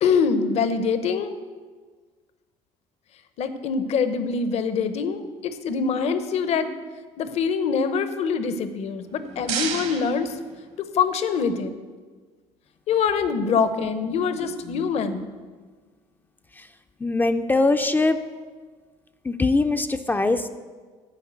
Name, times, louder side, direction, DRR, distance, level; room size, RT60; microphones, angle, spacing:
voice 1, 0.0-1.3 3.4-6.7 7.2-10.4 10.9-11.7 12.9-15.3, left 5 dB, 60° left, 11 dB, 0.8 m, -24 dB
sound 1, 8.9-11.1, right 7 dB, 65° right, 1.2 m, -33 dB
voice 2, 17.0-18.2 19.3-20.5, left 3 dB, 15° left, 8 dB, 0.4 m, -21 dB
10.0 x 4.8 x 7.9 m, 1.5 s
cardioid pair, 100°, 13 cm